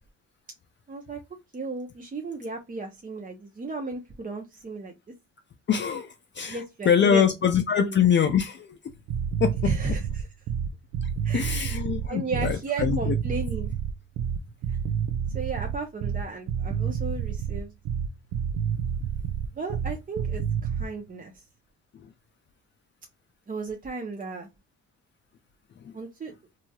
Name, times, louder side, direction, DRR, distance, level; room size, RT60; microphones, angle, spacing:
voice 1, 0.9-1.2 1.5-4.9 6.5-7.2 7.8-8.0 9.6-10.3 11.2-11.7 12.1-13.7 14.7-14.8 15.3-17.7 19.5-21.4 23.5-24.5 25.9-26.3, right 3 dB, 30° right, 0.7 m, -34 dB
voice 2, 5.7-8.8 9.4-9.7 11.0-13.1 25.8-25.9, left 8 dB, 40° left, 0.4 m, -24 dB
sound 1, 8.9-20.9, right 7 dB, 70° right, 0.5 m, -29 dB
3.0 x 2.7 x 2.3 m
cardioid pair, 95°, 30 cm